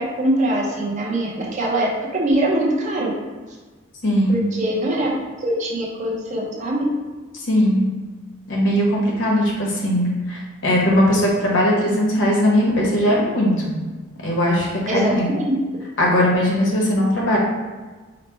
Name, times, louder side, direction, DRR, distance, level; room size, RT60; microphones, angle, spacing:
voice 1, 0.0-3.1 4.3-5.1 5.4-6.8 14.9-15.6, right 1 dB, 35° right, -3 dB, 0.7 m, -22 dB
voice 2, 4.0-4.5 7.3-7.9 8.5-13.8 14.2-15.3 16.0-17.4, equal, 65° left, -3 dB, 1.0 m, -19 dB
4.1 x 2.1 x 4.3 m, 1.3 s
head